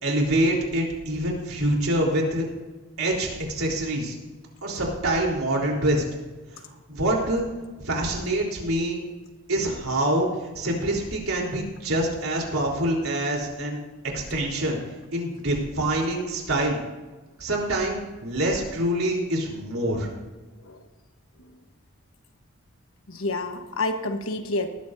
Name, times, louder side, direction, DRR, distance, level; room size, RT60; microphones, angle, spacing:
voice 1, 0.0-2.5 3.0-4.1 4.6-6.0 6.9-7.5 7.8-9.0 9.5-10.3 10.5-13.8 14.1-14.8 15.1-16.8 17.4-20.1, right 1 dB, 90° right, -1 dB, 3.9 m, -25 dB
voice 2, 23.1-24.7, left 2 dB, 80° left, 6 dB, 1.3 m, -28 dB
19.0 x 13.5 x 2.7 m, 1.2 s
head